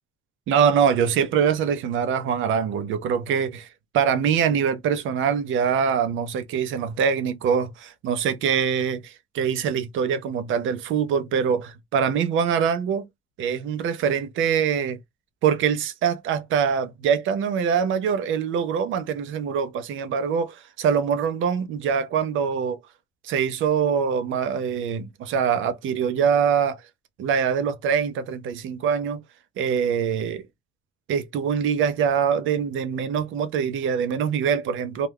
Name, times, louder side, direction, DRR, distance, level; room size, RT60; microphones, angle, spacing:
voice 1, 0.5-3.7 3.9-13.0 13.4-15.0 15.4-22.8 23.2-26.8 27.2-29.2 29.6-30.4 31.1-35.1, right 7 dB, 80° right, 0.5 m, -24 dB
2.3 x 2.2 x 3.3 m
cardioid pair, 90°, 20 cm